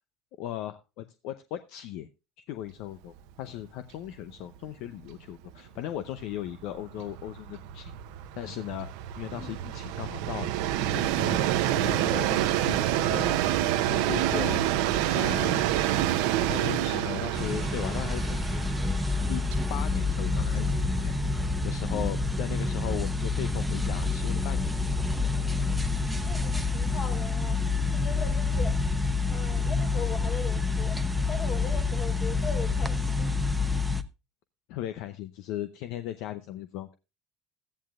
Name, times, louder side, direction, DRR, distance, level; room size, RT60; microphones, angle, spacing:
voice 1, 0.4-2.1 2.4-7.9 8.4-8.9 9.2-10.5 10.9-11.4 11.7-13.4 13.9-14.6 15.1-15.8 16.4-18.6 19.0-19.4 19.7-24.7 34.7-36.9, left 12 dB, 70° left, 0.6 m, -37 dB
Train, 3.1-3.3 3.6-3.7 4.0-21.4, right 12 dB, 75° right, 0.8 m, -28 dB
voice 2, 14.3-14.8 15.9-16.0 21.9-22.2 26.2-27.6 27.9-28.8 29.3-31.0 31.3-33.3, left 4 dB, 45° left, 3.1 m, -39 dB
sound 1, 17.3-34.0, left 3 dB, 5° right, 0.9 m, -28 dB
14.0 x 10.0 x 2.4 m
hypercardioid pair, 85°, 0 cm